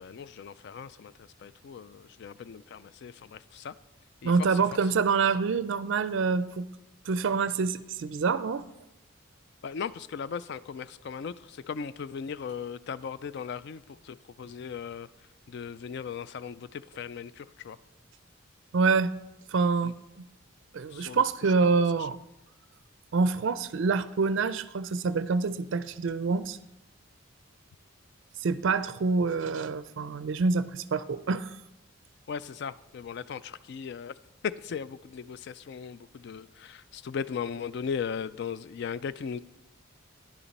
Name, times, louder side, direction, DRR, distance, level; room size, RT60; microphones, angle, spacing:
voice 1, 0.0-3.7 4.2-4.5 9.6-15.1 15.5-17.8 19.8-19.9 20.9-21.5 32.3-34.1 34.4-39.4, left 6 dB, 55° left, 0.3 m, -37 dB
voice 2, 4.2-6.7 7.1-8.6 18.7-19.1 19.5-20.2 20.7-22.2 23.1-26.6 28.4-31.6, right 4 dB, 65° right, 0.4 m, -26 dB
10.0 x 7.0 x 5.2 m
head